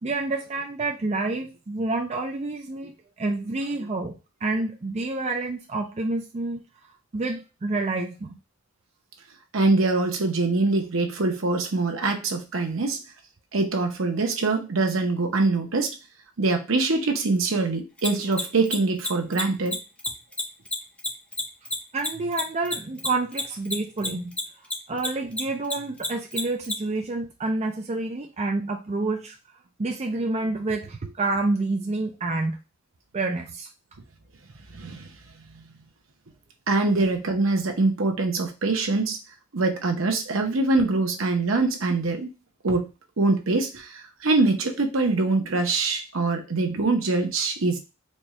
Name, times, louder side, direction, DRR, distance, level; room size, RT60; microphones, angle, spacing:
voice 1, 0.0-4.1 4.4-6.6 7.1-8.4 21.9-24.3 24.9-29.4 29.8-32.6 33.1-33.7, right 2 dB, 30° right, 3 dB, 0.4 m, -28 dB
voice 2, 9.5-13.0 13.5-16.0 16.4-19.8 34.7-35.1 36.7-39.2 39.5-42.3 42.6-42.9 43.2-47.8, right 3 dB, 75° right, 4 dB, 0.9 m, -24 dB
Mechanisms, 18.0-24.7 25.0-26.7, left 1 dB, 5° left, 0.6 m, -28 dB
4.3 x 2.3 x 3.1 m, 0.29 s
head